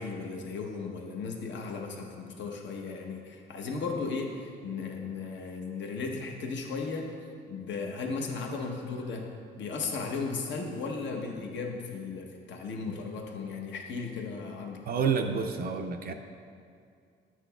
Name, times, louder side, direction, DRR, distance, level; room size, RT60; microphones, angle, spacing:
voice 1, 0.0-7.1 7.5-9.2 9.6-14.8, left 4 dB, 65° left, 1 dB, 0.9 m, -36 dB
voice 2, 14.9-16.1, right 6 dB, 50° right, 5 dB, 0.4 m, -29 dB
8.3 x 6.1 x 2.3 m, 2.3 s
cardioid pair, 90°, 20 cm